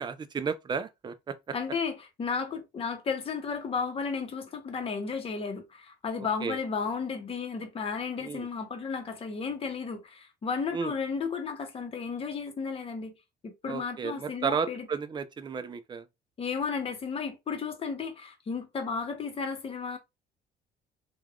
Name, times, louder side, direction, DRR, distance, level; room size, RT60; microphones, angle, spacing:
voice 1, 0.0-1.5 6.4-6.6 8.2-8.5 10.7-10.9 13.7-16.0, right 6 dB, 25° right, 0.4 m, -33 dB
voice 2, 1.5-13.1 13.4-14.9 16.4-20.0, left 5 dB, 35° left, 0.8 m, -33 dB
3.2 x 2.3 x 2.3 m
cardioid pair, 110°, 17 cm